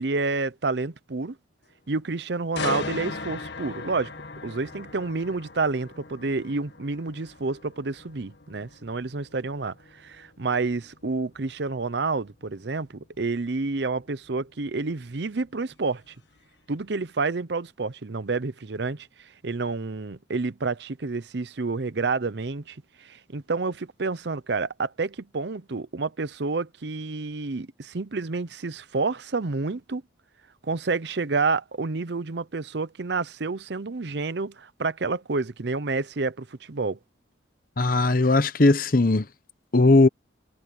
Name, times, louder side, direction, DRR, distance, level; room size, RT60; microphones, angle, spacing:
voice 1, 0.0-1.4 1.9-4.1 4.4-9.7 10.0-16.0 16.7-19.1 19.4-30.0 30.6-37.0, right 3 dB, 60° right, 0.7 m, -29 dB
sound 1, 2.6-16.4 16.8-17.1, left 3 dB, 65° left, 1.6 m, -39 dB
voice 2, 37.8-39.3 39.7-40.1, left 2 dB, 50° left, 1.0 m, -18 dB
head